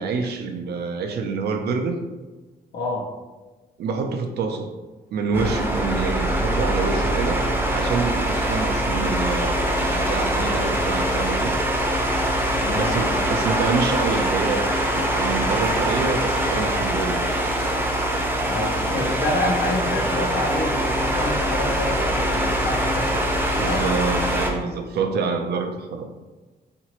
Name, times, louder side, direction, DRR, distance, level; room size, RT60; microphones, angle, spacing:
voice 1, 0.0-2.0 3.8-4.7 5.1-7.4 7.7-11.6 12.7-14.7 14.9-17.2 23.6-26.1, right 4 dB, 80° right, 5 dB, 0.4 m, -27 dB
voice 2, 2.7-3.1 12.6-13.3 18.4-23.3 23.7-23.9, left 1 dB, 75° left, -1 dB, 0.7 m, -28 dB
sound 1, 5.3-24.5, right 1 dB, 15° right, 0.6 m, -23 dB
3.0 x 2.5 x 2.9 m, 1.3 s
cardioid pair, 95°, 17 cm